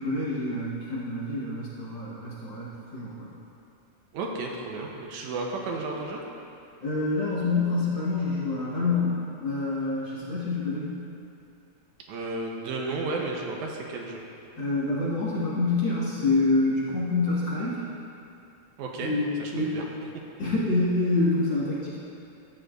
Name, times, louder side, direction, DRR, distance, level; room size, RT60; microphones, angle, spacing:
voice 1, 0.0-3.3 6.8-11.0 14.6-17.9 19.0-19.8 20.4-22.0, left 3 dB, 45° left, -9 dB, 2.1 m, -27 dB
voice 2, 4.1-6.2 12.1-14.2 18.8-19.1 19.4-19.8, right 3 dB, 85° right, 0 dB, 2.3 m, -33 dB
13.0 x 8.7 x 2.5 m, 2.7 s
omnidirectional pair, 3.4 m